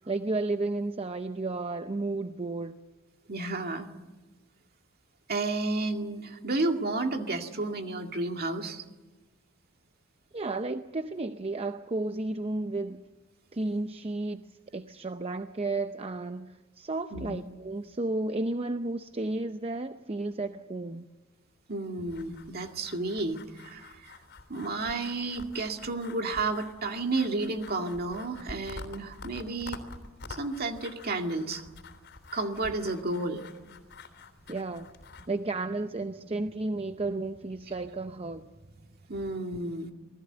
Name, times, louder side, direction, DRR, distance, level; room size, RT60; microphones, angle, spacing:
voice 1, 0.0-2.8 10.3-13.0 13.5-14.5 14.7-21.1 34.5-34.9 35.3-38.5, right 2 dB, 30° right, 0.7 m, -32 dB
voice 2, 3.3-3.9 5.3-8.8 17.1-17.4 21.7-24.2 24.5-29.8 30.3-31.6 32.3-33.4 39.1-39.9, right 2 dB, 45° right, 2.2 m, -32 dB
sound 1, 22.1-35.3, left 3 dB, 55° left, 3.4 m, -48 dB
27.5 x 19.5 x 8.0 m
head